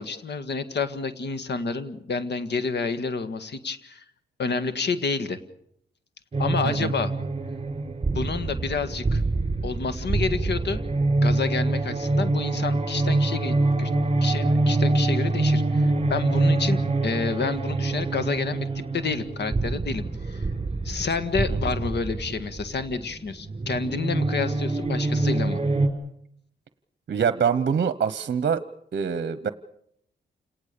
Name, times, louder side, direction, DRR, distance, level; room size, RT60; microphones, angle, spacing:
voice 1, 0.0-4.0 4.4-5.4 6.4-7.1 8.1-9.2 9.6-10.8 11.2-13.9 14.2-20.5 20.8-25.6, left 4 dB, 65° left, 11 dB, 1.8 m, -29 dB
sound 1, 6.3-25.9, right 2 dB, 30° right, 4.4 m, -25 dB
voice 2, 27.1-28.6 28.9-29.5, right 7 dB, 55° right, 13 dB, 1.0 m, -24 dB
29.0 x 18.5 x 6.9 m, 0.72 s
cardioid pair, 95°, 19 cm